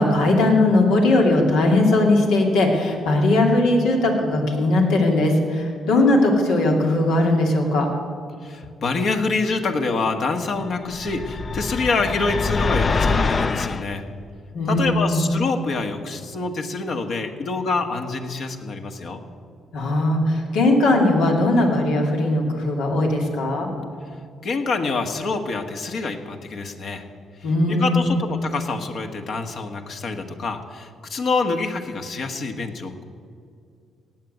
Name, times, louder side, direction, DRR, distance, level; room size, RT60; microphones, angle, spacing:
voice 1, 0.0-7.9 14.5-15.2 19.7-23.7 27.4-28.2, left 2 dB, 90° left, 1 dB, 2.6 m, -19 dB
voice 2, 8.4-14.1 14.7-19.2 24.4-27.0 27.4-33.0, left 3 dB, 60° left, 5 dB, 1.5 m, -26 dB
sound 1, 10.9-13.8, left 4 dB, 35° left, 0.5 m, -24 dB
18.0 x 7.6 x 9.3 m, 2.3 s
cardioid pair, 90°, 0 cm